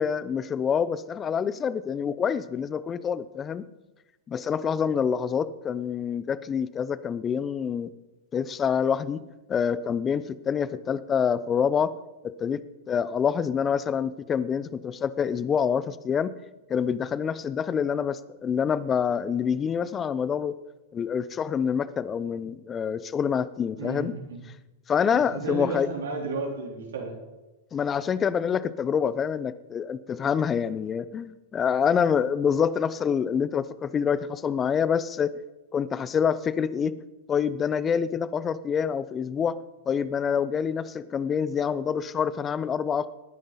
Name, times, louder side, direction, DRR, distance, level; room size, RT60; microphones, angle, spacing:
voice 1, 0.0-3.7 4.3-7.9 8.3-9.2 9.5-11.9 12.2-16.3 16.7-20.6 20.9-24.1 24.9-25.9 27.7-35.4 35.7-37.0 37.3-39.6 39.9-43.1, left 7 dB, 25° left, 17 dB, 0.7 m, -26 dB
voice 2, 23.8-24.4 25.1-27.2, right 3 dB, 75° right, 0 dB, 3.7 m, -33 dB
19.0 x 10.0 x 4.1 m, 1.1 s
hypercardioid pair, 100°, 0 cm